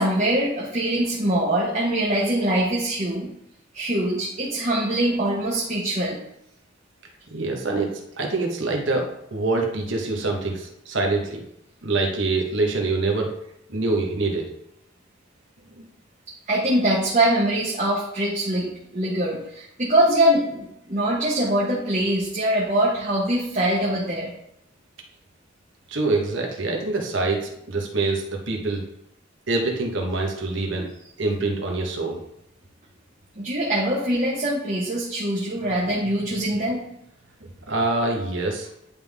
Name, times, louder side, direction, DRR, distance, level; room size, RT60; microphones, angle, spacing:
voice 1, 0.0-3.3 3.7-6.2 16.5-24.3 33.4-36.8, right 1 dB, 35° right, -5 dB, 1.2 m, -23 dB
voice 2, 7.3-11.4 11.8-13.3 13.7-14.5 15.7-15.8 25.9-28.8 29.5-30.9 31.2-32.2 37.7-38.7, right 3 dB, 65° right, 1 dB, 1.3 m, -25 dB
10.0 x 3.7 x 3.5 m, 0.79 s
head